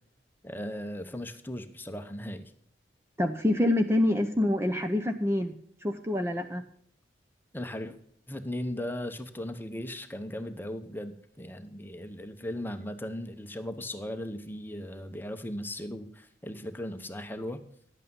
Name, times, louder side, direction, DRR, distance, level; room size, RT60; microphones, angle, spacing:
voice 1, 0.4-2.5 7.5-8.0 8.3-17.6, left 1 dB, 10° left, 8 dB, 0.9 m, -37 dB
voice 2, 3.2-5.5 5.8-6.6, left 1 dB, 15° right, 6 dB, 0.6 m, -26 dB
11.0 x 8.3 x 5.4 m, 0.65 s
head